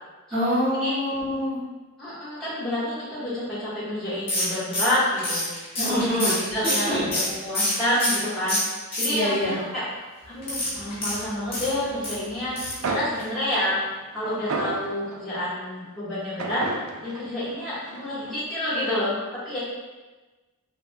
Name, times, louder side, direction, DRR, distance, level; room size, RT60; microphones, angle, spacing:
voice 1, 0.3-1.6 5.8-6.3 6.6-7.1 9.1-9.6, equal, 20° right, -20 dB, 1.3 m, -25 dB
voice 2, 2.0-5.4 5.8-8.6 8.9-9.8 10.2-13.8 14.1-16.6 17.0-19.1 19.4-19.6, left 1 dB, ahead, -11 dB, 1.3 m, -28 dB
sound 1, 4.3-8.2 8.5-9.5 10.4-12.2 12.5-12.9 13.1-13.2 13.5-13.6, left 1 dB, 25° left, 0.8 m, -27 dB
sound 2, 12.8-15.4 16.4-18.3, right 3 dB, 70° right, 0.4 m, -33 dB
3.3 x 2.6 x 2.2 m, 1.2 s
head